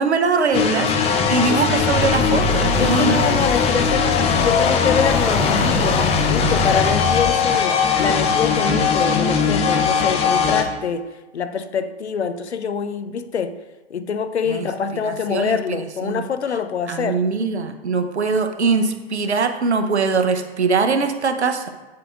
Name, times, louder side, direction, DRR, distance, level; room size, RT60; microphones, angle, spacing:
voice 1, 0.0-3.3 14.5-14.7 15.0-16.2 16.9-21.7, right 4 dB, 85° right, 0.8 m, -22 dB
sound 1, 0.5-10.6, left 6 dB, 20° left, 0.6 m, -19 dB
sound 2, 1.8-7.3, left 1 dB, 45° left, 2.0 m, -26 dB
voice 2, 2.8-11.1 11.3-13.6 13.9-17.2, left 6 dB, 85° left, 0.6 m, -25 dB
8.4 x 7.5 x 2.4 m
figure-of-eight pair, 110°, 32 cm